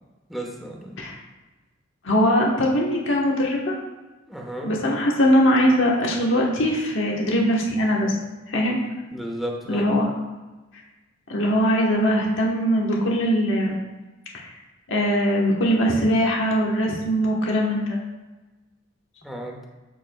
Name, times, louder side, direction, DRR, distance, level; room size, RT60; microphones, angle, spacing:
voice 1, 0.3-1.0 4.3-4.7 9.1-9.9 19.2-19.6, right 1 dB, ahead, -1 dB, 1.1 m, -33 dB
voice 2, 2.0-3.7 4.6-8.1 8.5-8.8 9.7-10.1 11.3-13.8 14.9-18.0, equal, 70° left, -2 dB, 1.3 m, -21 dB
13.0 x 4.5 x 2.3 m, 1.2 s
head